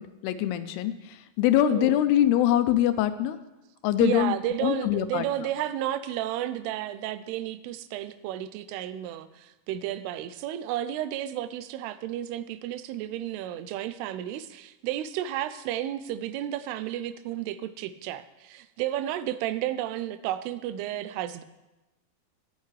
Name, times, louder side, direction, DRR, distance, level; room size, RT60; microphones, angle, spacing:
voice 1, 0.0-3.4 3.8-4.4 4.6-5.5, left 12 dB, 85° left, 11 dB, 2.7 m, -24 dB
voice 2, 1.6-2.0 4.0-21.4, right 12 dB, 85° right, 13 dB, 2.6 m, -32 dB
17.5 x 8.3 x 3.2 m, 1.0 s
omnidirectional pair, 4.6 m